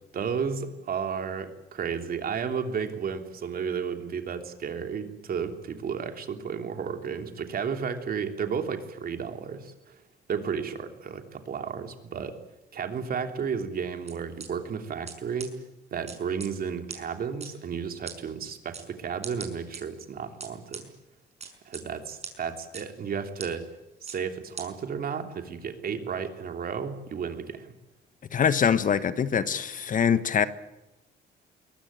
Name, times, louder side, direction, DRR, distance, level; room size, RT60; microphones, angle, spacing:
voice 1, 0.1-10.0 10.3-12.4 12.7-15.5 15.9-20.9 21.6-23.6 24.0-27.7, right 6 dB, 55° right, 6 dB, 3.2 m, -33 dB
sound 1, 14.1-14.5 15.1-15.2 15.4-15.5 16.1-16.5 16.9-17.0 17.4-17.5 18.1-18.2 18.7-18.9 19.2-19.8 20.4-20.8 21.4-21.8 22.2-22.3 22.7-22.8 23.4-23.5 24.1-24.2 24.6-24.7, right 5 dB, 35° right, 5.6 m, -39 dB
voice 2, 28.3-30.5, left 7 dB, 45° left, 13 dB, 1.4 m, -24 dB
22.5 x 19.0 x 9.0 m, 0.96 s
cardioid pair, 95°, 18 cm